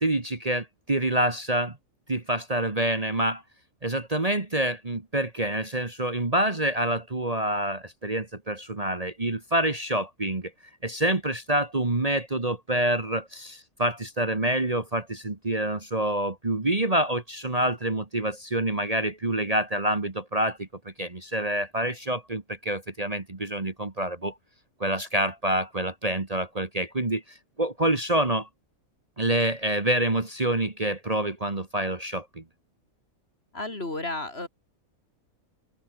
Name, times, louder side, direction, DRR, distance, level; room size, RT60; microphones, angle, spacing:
voice 1, 0.0-1.8 2.1-3.4 3.8-10.5 10.8-24.3 24.8-28.5 29.2-32.4, right 1 dB, 25° right, 1.8 m, -27 dB
voice 2, 33.5-34.5, left 2 dB, 45° left, 4.3 m, -32 dB
omnidirectional pair, 1.5 m